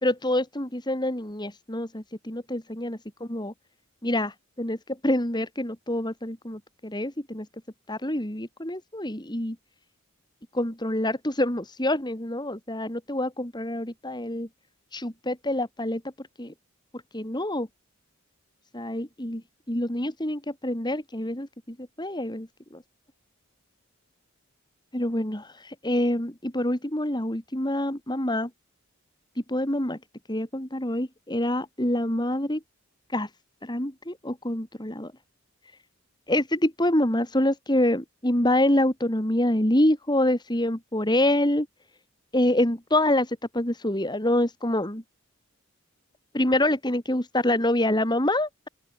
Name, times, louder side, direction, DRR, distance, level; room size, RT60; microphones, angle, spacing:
voice 1, 0.0-3.5 4.0-7.5 7.9-9.6 10.5-14.5 14.9-16.5 17.1-17.7 18.7-22.8 24.9-28.5 29.5-30.0 30.3-32.6 33.1-33.3 33.6-35.1 36.3-41.7 42.3-45.0 46.3-48.7, left 1 dB, 20° left, 2.6 m, -26 dB
open air
head